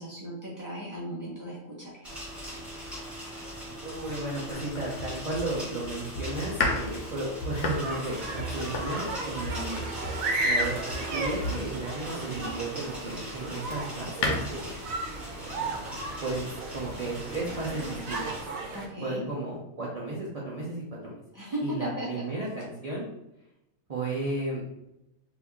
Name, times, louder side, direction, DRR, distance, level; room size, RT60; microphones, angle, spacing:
voice 1, 0.0-2.3 18.7-19.3 21.3-22.2, equal, 15° left, -7 dB, 1.0 m, -36 dB
sound 1, 2.0-18.4, equal, ahead, 1.3 m, -41 dB
voice 2, 3.8-9.8 10.4-14.7 16.2-18.4 19.0-21.1 21.6-23.0 23.9-24.6, right 2 dB, 35° right, -6 dB, 0.6 m, -34 dB
Domestic sounds home sounds, 4.5-12.7 13.2-14.4, left 2 dB, 65° left, 0.9 m, -34 dB
sound 2, 7.6-18.9, right 2 dB, 90° right, 1.1 m, -34 dB
2.9 x 2.6 x 3.5 m, 0.89 s
omnidirectional pair, 1.4 m